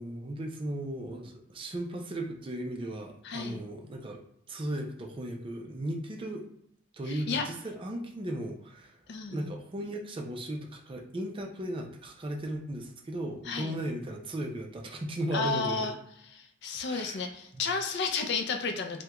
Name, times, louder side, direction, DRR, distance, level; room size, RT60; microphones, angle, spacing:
voice 1, 0.0-4.2 4.5-6.4 6.9-9.0 9.3-15.9 16.9-17.3 17.5-17.6, right 1 dB, 25° right, 2 dB, 0.4 m, -36 dB
voice 2, 3.2-3.6 7.1-7.4 9.1-9.5 13.5-13.8 15.3-15.9 16.4-19.0, left 4 dB, 55° left, 5 dB, 0.4 m, -32 dB
3.4 x 2.1 x 2.9 m, 0.75 s
head